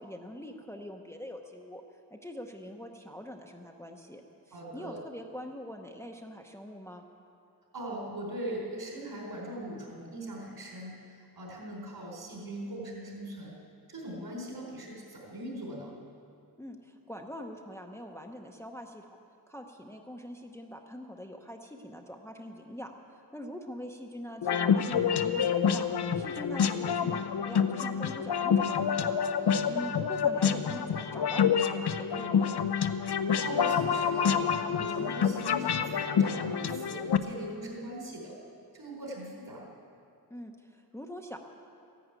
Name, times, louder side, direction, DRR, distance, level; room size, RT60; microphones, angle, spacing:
voice 1, 0.0-1.8 2.1-7.1 16.6-19.2 19.5-25.9 26.1-29.2 29.7-32.6 40.3-41.4, equal, 5° left, 3 dB, 0.8 m, -43 dB
voice 2, 4.5-5.0 7.7-13.5 13.9-16.0 29.2-29.7 33.4-38.3 38.7-39.7, right 1 dB, 65° right, -1 dB, 4.2 m, -40 dB
sound 1, 24.4-37.2, left 7 dB, 75° left, 0.8 m, -27 dB
14.5 x 11.0 x 9.0 m, 2.5 s
wide cardioid pair, 135°, 40 cm